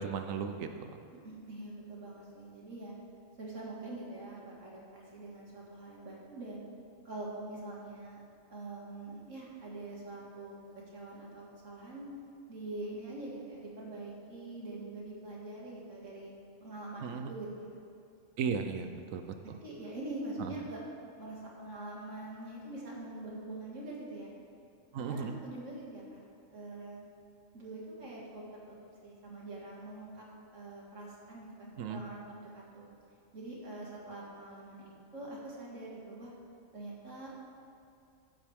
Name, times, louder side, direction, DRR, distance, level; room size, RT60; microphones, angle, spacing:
voice 1, 0.0-1.0 17.0-17.3 18.4-19.6 20.4-20.5 24.9-25.4 31.8-32.0, right 6 dB, 85° right, 7 dB, 1.1 m, -36 dB
voice 2, 1.1-2.9 3.4-6.7 7.0-8.2 8.5-10.6 10.9-12.1 12.5-16.3 16.6-17.8 18.8-18.9 19.6-20.8 21.2-24.4 25.0-26.3 26.5-27.1 27.5-28.4 29.0-30.2 30.5-32.9 33.3-36.3 36.7-37.3, right 2 dB, 70° right, -4 dB, 2.5 m, -44 dB
15.0 x 7.5 x 3.5 m, 2.5 s
omnidirectional pair, 1.4 m